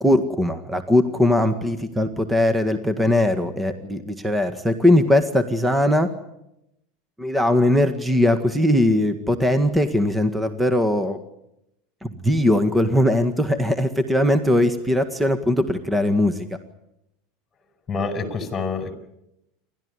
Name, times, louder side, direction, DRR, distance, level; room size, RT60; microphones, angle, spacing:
voice 1, 0.0-6.1 7.2-11.2 12.0-16.4, left 1 dB, 10° right, 10 dB, 1.8 m, -20 dB
voice 2, 17.9-18.9, left 4 dB, 25° left, 8 dB, 5.2 m, -27 dB
28.0 x 13.0 x 9.8 m, 0.84 s
hypercardioid pair, 100°, 0 cm